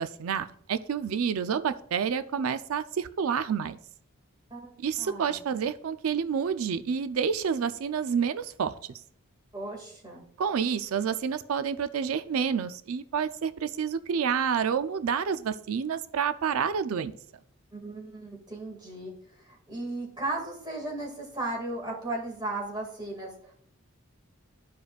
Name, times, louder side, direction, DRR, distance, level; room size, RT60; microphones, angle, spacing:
voice 1, 0.0-3.8 4.8-8.7 10.4-17.1, right 7 dB, 85° right, 12 dB, 0.4 m, -29 dB
voice 2, 4.5-5.4 9.5-10.2 17.7-23.5, right 2 dB, 20° right, -1 dB, 2.0 m, -36 dB
13.0 x 5.0 x 2.4 m, 0.65 s
head